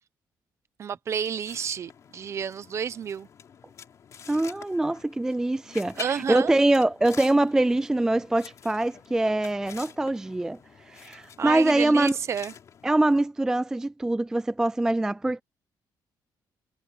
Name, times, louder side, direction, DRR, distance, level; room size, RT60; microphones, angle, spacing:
voice 1, 0.8-3.3 6.0-6.6 11.4-12.5, right 7 dB, 40° right, 0.9 m, -30 dB
sound 1, 1.4-13.2, left 7 dB, 40° left, 3.8 m, -47 dB
voice 2, 4.3-10.6 10.9-12.2 12.8-15.4, right 2 dB, 5° right, 0.3 m, -24 dB
cardioid pair, 165°, 8 cm